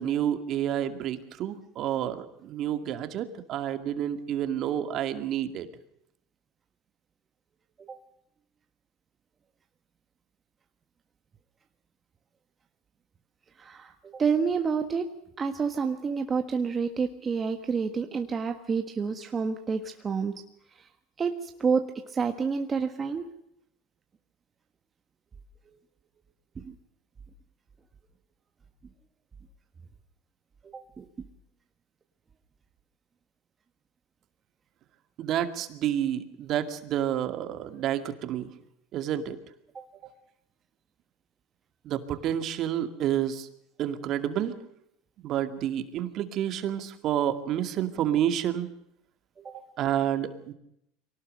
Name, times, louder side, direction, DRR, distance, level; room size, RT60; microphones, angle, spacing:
voice 1, 0.0-5.7 35.2-38.5 38.9-39.4 41.8-43.5 43.8-44.6 45.2-48.7 49.5-50.5, right 10 dB, 45° right, 9 dB, 2.3 m, -29 dB
voice 2, 13.6-15.1 15.4-20.3 21.2-21.3 21.6-23.3 26.6-26.7 30.7-31.0 39.7-39.8 49.4-49.5, right 5 dB, 25° right, 6 dB, 1.5 m, -29 dB
24.0 x 18.5 x 6.6 m, 0.76 s
supercardioid pair, 130°, 0 cm